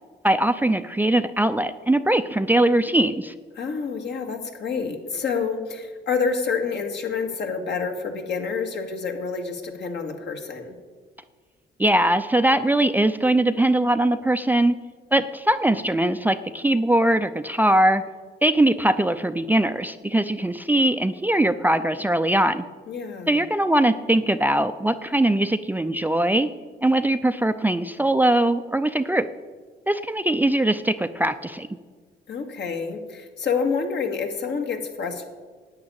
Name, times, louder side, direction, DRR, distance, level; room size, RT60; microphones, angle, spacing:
voice 1, 0.2-3.3 11.8-14.8 15.1-18.0 18.4-22.7 23.3-26.5 26.8-29.3 29.9-31.7, right 1 dB, 10° right, 10 dB, 0.5 m, -21 dB
voice 2, 3.6-10.7 22.9-23.4 32.3-35.2, left 5 dB, 60° left, 4 dB, 2.0 m, -28 dB
10.5 x 8.9 x 8.7 m, 1.5 s
cardioid pair, 90°, 20 cm